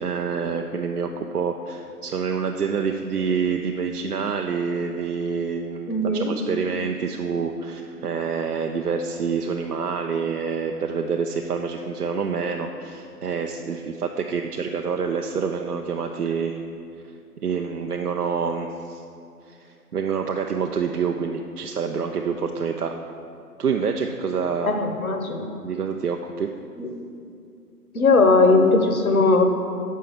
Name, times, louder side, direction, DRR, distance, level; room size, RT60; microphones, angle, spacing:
voice 1, 0.0-16.6 17.4-19.0 19.5-22.9 23.6-24.7 25.6-26.5, right 5 dB, 70° right, 3 dB, 0.7 m, -27 dB
voice 2, 5.9-6.3 24.6-25.5 26.8-26.9 27.9-29.4, left 3 dB, 60° left, 6 dB, 1.1 m, -19 dB
7.6 x 5.5 x 7.0 m, 2.5 s
figure-of-eight pair, 150°, 48 cm